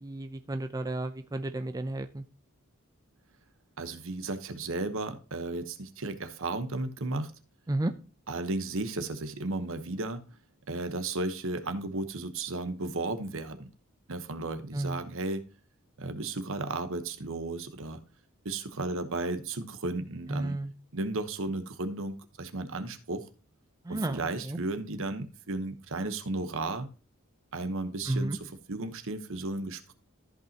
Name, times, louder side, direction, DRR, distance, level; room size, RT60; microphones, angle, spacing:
voice 1, 0.0-2.2 7.7-7.9 14.7-15.0 20.3-20.7 23.9-24.2 24.5-24.6 28.1-28.4, right 1 dB, 15° right, 8 dB, 0.5 m, -32 dB
voice 2, 3.8-7.3 8.3-10.2 10.7-13.7 14.1-15.4 16.0-18.0 18.4-20.6 20.9-23.3 23.9-26.9 27.5-29.9, right 2 dB, 65° right, 10 dB, 1.1 m, -34 dB
14.0 x 5.5 x 2.9 m, 0.34 s
head